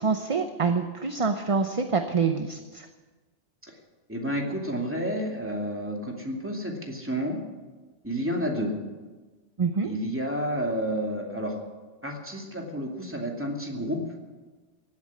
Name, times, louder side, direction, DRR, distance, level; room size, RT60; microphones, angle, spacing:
voice 1, 0.0-2.9 9.6-9.9, right 5 dB, 30° right, 7 dB, 0.8 m, -26 dB
voice 2, 4.1-7.4 8.0-8.7 9.8-11.6 12.0-14.0, equal, 10° right, 0 dB, 2.6 m, -30 dB
17.0 x 8.9 x 9.7 m, 1.3 s
omnidirectional pair, 1.2 m